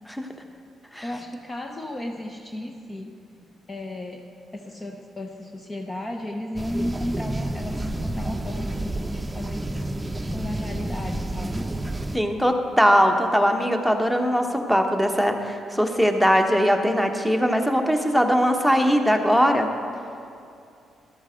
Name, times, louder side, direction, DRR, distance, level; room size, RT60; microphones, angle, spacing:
voice 1, 1.0-3.1 3.7-4.2 4.5-9.8 10.3-11.7, left 1 dB, 25° left, 3 dB, 0.9 m, -34 dB
sound 1, 6.6-12.2, right 1 dB, 15° right, 0.8 m, -30 dB
voice 2, 12.1-19.7, equal, 5° left, 5 dB, 1.3 m, -20 dB
13.5 x 13.0 x 3.9 m, 2.6 s
figure-of-eight pair, 40°, 0 cm